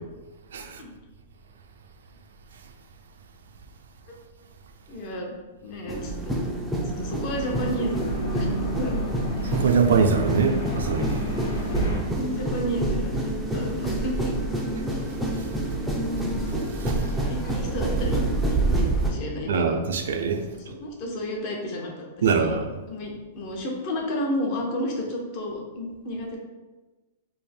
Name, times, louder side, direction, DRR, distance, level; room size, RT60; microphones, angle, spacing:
voice 1, 0.6-0.9 4.9-5.3 5.6-6.5 7.0-9.0 11.5-11.7 12.1-13.1 13.5-14.4 17.0-19.8 20.5-22.6 22.9-26.4, equal, 35° left, 0 dB, 0.7 m, -32 dB
sound 1, 5.9-19.1, right 2 dB, 5° right, 0.4 m, -27 dB
sound 2, 6.8-12.0, right 1 dB, 70° left, 1.0 m, -31 dB
voice 2, 9.5-11.2 16.8-16.9 19.5-20.4 22.2-22.7, right 5 dB, 90° right, 5 dB, 0.4 m, -23 dB
3.4 x 2.1 x 4.3 m, 1.2 s
supercardioid pair, 165°, 0 cm